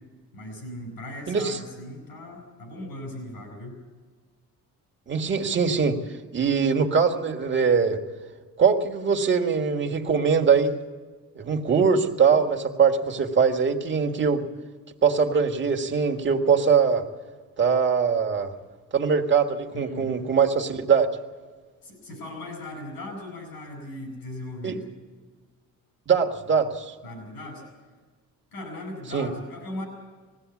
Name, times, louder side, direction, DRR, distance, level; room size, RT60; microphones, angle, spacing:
voice 1, 0.3-3.8 19.7-20.2 21.8-24.8 27.0-27.6 28.5-29.9, left 1 dB, 85° left, 4 dB, 7.7 m, -38 dB
voice 2, 1.3-1.6 5.1-6.0 6.3-8.0 8.6-10.7 11.4-14.5 15.0-17.0 17.6-18.5 18.9-21.1 24.6-24.8 26.1-26.9 29.1-29.3, right 6 dB, 30° right, 3 dB, 1.7 m, -22 dB
20.0 x 16.0 x 8.4 m, 1.4 s
cardioid pair, 135°, 36 cm